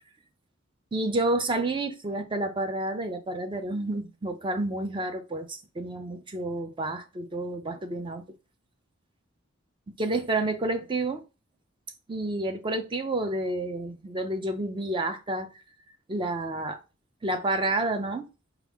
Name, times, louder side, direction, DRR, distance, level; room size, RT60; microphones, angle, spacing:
voice 1, 0.9-8.2 10.0-11.2 12.1-15.5 16.1-16.8 17.2-18.3, right 2 dB, 25° right, 0.5 m, -29 dB
4.7 x 2.4 x 3.4 m
head